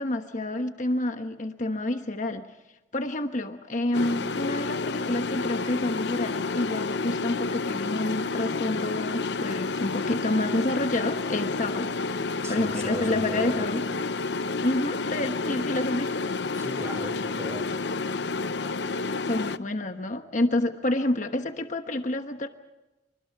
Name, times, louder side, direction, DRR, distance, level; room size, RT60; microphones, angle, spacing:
voice 1, 0.0-2.5 2.9-11.9 12.5-13.8 14.6-16.2 19.2-22.5, left 1 dB, 45° left, 7 dB, 1.2 m, -28 dB
sound 1, 3.9-19.6, left 3 dB, 70° left, 0.7 m, -30 dB
voice 2, 12.4-13.7 16.5-17.7, equal, 15° right, 6 dB, 4.8 m, -37 dB
28.0 x 25.0 x 4.7 m, 1.0 s
head